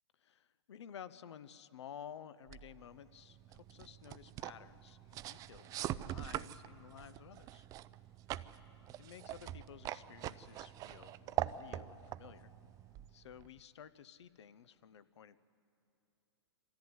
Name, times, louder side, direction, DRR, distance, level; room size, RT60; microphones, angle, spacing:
voice 1, 0.2-7.7 9.0-12.5 13.1-15.4, left 9 dB, 75° left, 16 dB, 0.8 m, -53 dB
sound 1, 2.5-13.6, right 13 dB, 25° right, 0.4 m, -43 dB
24.0 x 14.0 x 9.6 m, 2.9 s
hypercardioid pair, 130°, 15 cm